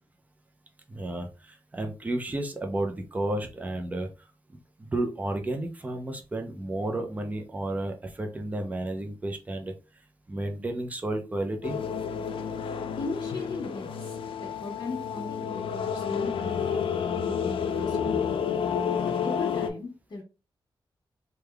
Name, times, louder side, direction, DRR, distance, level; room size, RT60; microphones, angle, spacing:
voice 1, 0.9-4.1 4.8-9.7 10.3-11.8, right 1 dB, 15° right, 4 dB, 0.5 m, -32 dB
sound 1, 11.6-19.7, left 7 dB, 80° left, 0.4 m, -30 dB
voice 2, 12.5-20.2, left 3 dB, 50° left, -4 dB, 1.2 m, -39 dB
3.5 x 2.3 x 3.3 m, 0.30 s
wide cardioid pair, 165°, 9 cm